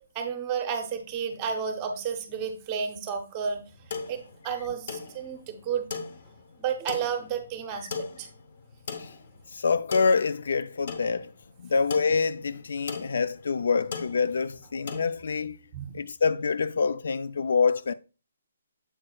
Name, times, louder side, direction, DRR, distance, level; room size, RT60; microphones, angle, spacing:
voice 1, 0.1-3.6 4.1-5.9 6.6-7.9 8.2-8.3 15.7-16.0, right 7 dB, 20° right, 0.7 m, -31 dB
sound 1, 3.6-15.1, left 5 dB, 40° left, 0.7 m, -40 dB
voice 2, 9.5-11.3 11.6-15.6 15.9-17.9, left 5 dB, 60° left, 0.3 m, -26 dB
7.7 x 6.2 x 2.3 m
hypercardioid pair, 175°, 0 cm